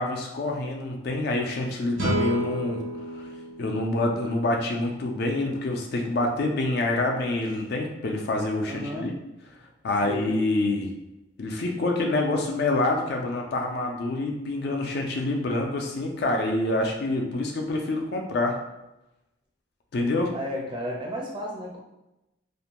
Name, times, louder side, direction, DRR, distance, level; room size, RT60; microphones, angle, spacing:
voice 1, 0.0-2.8 3.1-3.2 3.6-9.1 9.8-10.9 11.4-18.6 19.9-20.3, left 2 dB, 50° left, 1 dB, 0.3 m, -26 dB
sound 1, 2.0-5.3, right 1 dB, 70° right, 0.5 m, -32 dB
voice 2, 8.7-9.2 10.0-10.3 20.3-21.8, equal, 25° right, -2 dB, 0.4 m, -33 dB
2.5 x 2.1 x 2.9 m, 0.94 s
head